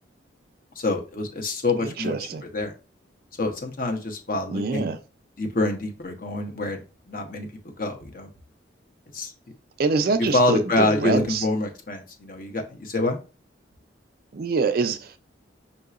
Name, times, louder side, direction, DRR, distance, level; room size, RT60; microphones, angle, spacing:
voice 1, 0.8-2.7 3.4-4.9 5.4-6.8 7.1-7.5 7.8-8.3 9.1-9.3 10.3-13.2, left 2 dB, 45° left, 0.8 m, -26 dB
voice 2, 1.8-2.4 4.5-5.0 9.8-11.4 14.3-15.2, right 4 dB, 50° right, 0.4 m, -25 dB
5.6 x 2.7 x 2.4 m
head